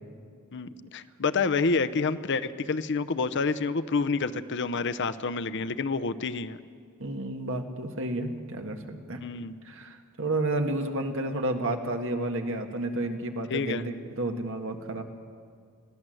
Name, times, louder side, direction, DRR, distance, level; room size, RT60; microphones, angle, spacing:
voice 1, 0.5-6.6 9.2-9.6 13.5-13.8, left 4 dB, 55° left, 11 dB, 0.7 m, -28 dB
voice 2, 7.0-9.2 9.6-15.0, right 2 dB, 60° right, 5 dB, 1.7 m, -31 dB
22.0 x 16.0 x 7.8 m, 2.2 s
head